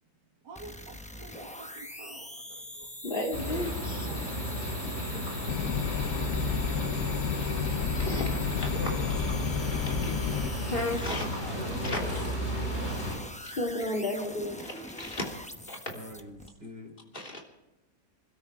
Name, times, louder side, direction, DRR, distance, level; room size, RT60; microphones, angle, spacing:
voice 1, 0.4-2.9, right 3 dB, 75° right, 3 dB, 2.2 m, -49 dB
sound 1, 0.6-16.5, left 1 dB, 10° left, 0.3 m, -43 dB
voice 2, 3.0-4.3 7.9-8.7 9.8-10.2 10.6-11.3 11.8-12.3 13.4-15.3 15.7-15.9 17.1-17.4, left 1 dB, 30° left, 0 dB, 3.2 m, -34 dB
sound 2, 3.3-13.2, equal, 85° left, 6.6 m, -33 dB
sound 3, 5.5-10.5, left 9 dB, 65° left, 0.9 m, -31 dB
voice 3, 8.6-9.1 11.5-12.1 15.9-16.9, right 1 dB, 35° right, 2 dB, 3.8 m, -42 dB
27.0 x 13.0 x 3.6 m, 0.98 s
omnidirectional pair, 1.9 m